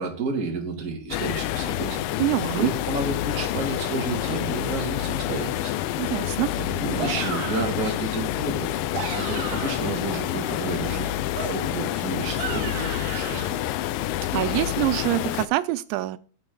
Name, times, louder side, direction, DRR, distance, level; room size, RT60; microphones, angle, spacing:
voice 1, 0.0-2.0 2.5-5.7 6.2-8.7 9.1-11.2 11.5-13.6, right 3 dB, 30° right, 0 dB, 1.9 m, -31 dB
sound 1, 1.1-15.5, left 13 dB, 90° left, 2.9 m, -28 dB
voice 2, 2.2-2.7 6.0-6.5 14.3-16.2, right 18 dB, 90° right, 13 dB, 2.9 m, -25 dB
sound 2, 7.0-7.8 8.7-9.9 11.3-13.5, right 6 dB, 60° right, 3.2 m, -34 dB
13.5 x 6.0 x 3.9 m, 0.39 s
omnidirectional pair, 5.1 m